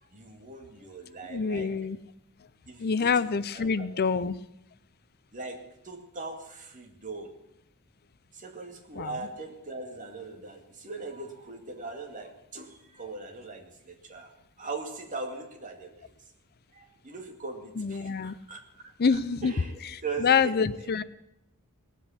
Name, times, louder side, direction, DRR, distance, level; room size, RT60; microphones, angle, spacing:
voice 1, 0.0-1.9 2.7-3.9 5.3-7.4 8.3-14.3 14.6-16.1 16.7-20.6, right 3 dB, 35° right, 3 dB, 2.4 m, -40 dB
voice 2, 1.3-2.0 2.8-4.4 9.0-9.2 17.8-18.4 19.0-19.5 20.2-21.0, left 5 dB, 45° left, 16 dB, 0.5 m, -26 dB
19.0 x 8.3 x 8.6 m, 0.85 s
head